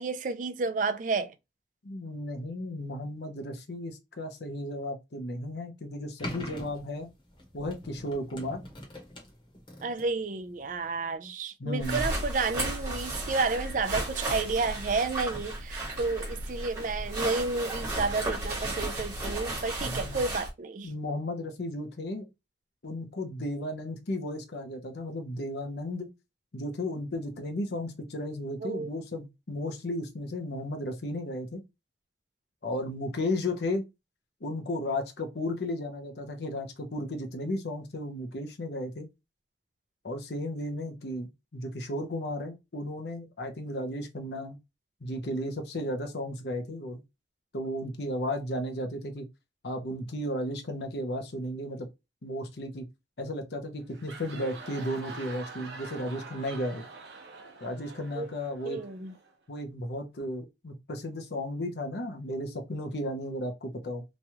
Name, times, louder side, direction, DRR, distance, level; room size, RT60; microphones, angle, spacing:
voice 1, 0.0-1.3 9.8-20.9 28.6-28.9 58.2-58.3 58.6-59.1, right 4 dB, 45° right, 0.4 m, -31 dB
voice 2, 1.8-7.1 7.5-8.6 11.6-12.1 19.8-20.2 20.8-22.3 22.8-26.1 26.5-31.6 32.6-33.8 34.4-39.1 40.0-44.6 45.0-47.0 47.5-49.2 49.6-51.9 52.2-52.9 53.2-56.9 57.6-58.8 59.5-64.0, left 1 dB, 70° left, 0.7 m, -34 dB
sound 1, 6.2-11.1, left 1 dB, 30° left, 0.9 m, -43 dB
sound 2, 11.8-20.5, right 1 dB, 20° right, 1.2 m, -34 dB
sound 3, 53.8-59.4, right 4 dB, 80° right, 0.8 m, -45 dB
3.0 x 2.3 x 2.8 m
head